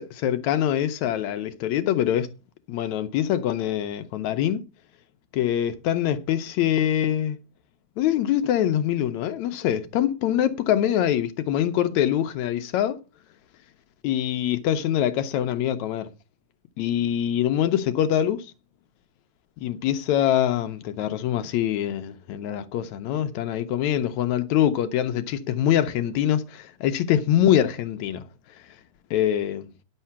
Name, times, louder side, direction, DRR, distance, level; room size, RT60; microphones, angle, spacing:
voice 1, 0.0-2.3 2.7-4.6 5.3-7.4 8.0-13.0 14.0-16.1 16.8-18.5 19.6-28.3 29.1-29.7, left 11 dB, 75° left, 2.1 m, -24 dB
11.0 x 6.5 x 5.7 m
omnidirectional pair, 3.3 m